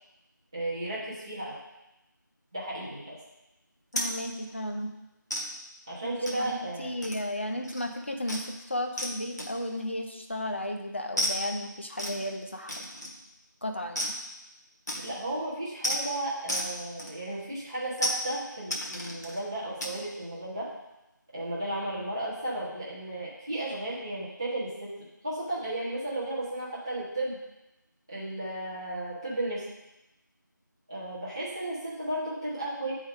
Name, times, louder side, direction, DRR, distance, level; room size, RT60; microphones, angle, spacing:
voice 1, 0.5-1.6 2.5-3.1 5.9-7.1 15.0-20.7 21.3-24.9 25.2-27.4 28.1-29.6 30.9-32.9, right 1 dB, 15° right, -9 dB, 0.7 m, -34 dB
sound 1, 3.9-4.1 4.5-4.7 5.3-5.5 6.3-6.5 7.0-7.4 7.6-7.9 8.3-8.5 9.0-9.1 9.4-9.8 11.2-11.4 12.0-12.2 12.7-13.2 14.0-14.2 14.9-15.2 15.8-16.0 16.5-16.7 17.0-17.5 18.0-18.2 18.7-19.4 19.8-20.0, equal, 55° left, 1.4 m, -32 dB
voice 2, 3.9-4.9 6.1-12.9 13.6-14.2, left 1 dB, 35° left, 4 dB, 0.6 m, -34 dB
8.5 x 3.6 x 3.7 m, 0.96 s
figure-of-eight pair, 170°, 11 cm